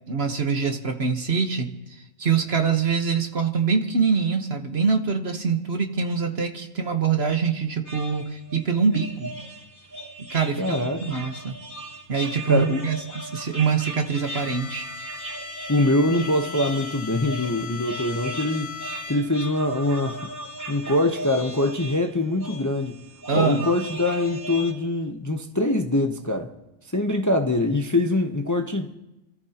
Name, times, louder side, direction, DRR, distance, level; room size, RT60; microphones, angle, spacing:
voice 1, 0.1-9.3 10.2-11.6 12.1-14.9 23.3-23.7, right 5 dB, 50° right, 1.5 m, -24 dB
sound 1, 7.8-24.7, right 1 dB, 15° right, 3.1 m, -38 dB
voice 2, 10.6-11.0 12.5-12.8 15.7-18.7 19.1-20.3 20.7-23.0 23.3-26.5 26.9-28.9, left 1 dB, 15° left, 0.8 m, -23 dB
Bowed string instrument, 14.1-19.6, left 7 dB, 80° left, 1.8 m, -38 dB
29.0 x 13.5 x 2.9 m
omnidirectional pair, 1.4 m